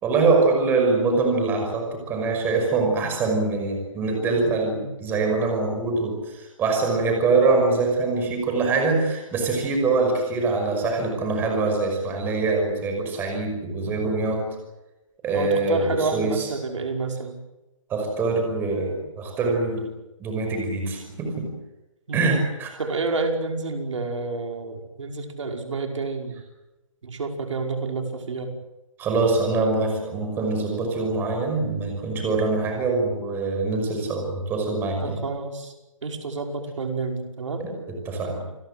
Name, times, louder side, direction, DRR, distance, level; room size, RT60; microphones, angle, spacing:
voice 1, 0.0-14.5 15.2-16.5 17.9-19.8 20.2-21.5 22.1-22.8 29.0-35.2 37.6-38.4, right 3 dB, 10° right, 3 dB, 5.8 m, -24 dB
voice 2, 15.3-17.4 22.1-22.3 22.8-26.4 27.0-28.6 35.0-35.7 36.0-37.6, right 3 dB, 65° right, 4 dB, 5.4 m, -29 dB
29.0 x 20.5 x 7.6 m, 1.0 s
hypercardioid pair, 160°, 17 cm